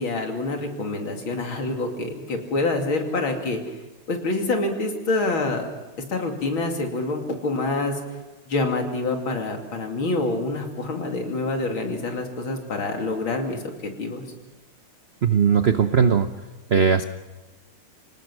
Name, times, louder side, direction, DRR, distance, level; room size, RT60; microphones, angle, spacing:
voice 1, 0.0-3.6 4.1-5.7 6.1-8.0 8.5-13.7 14.0-14.2, left 2 dB, 70° left, 3 dB, 3.5 m, -26 dB
voice 2, 15.2-16.3 16.7-17.0, right 6 dB, 75° right, 9 dB, 0.5 m, -18 dB
26.5 x 18.5 x 6.3 m, 1.2 s
omnidirectional pair, 2.3 m